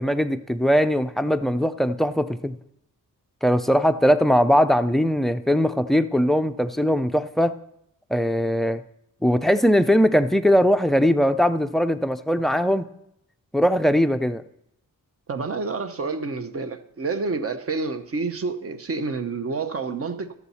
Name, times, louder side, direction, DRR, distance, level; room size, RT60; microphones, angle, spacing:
voice 1, 0.0-2.5 3.4-7.5 8.1-8.8 9.2-12.9 13.5-14.4, equal, ahead, 0.4 m, -20 dB
voice 2, 15.3-20.3, right 4 dB, 45° right, 0.8 m, -28 dB
13.0 x 7.0 x 4.2 m
wide cardioid pair, 135°, 34 cm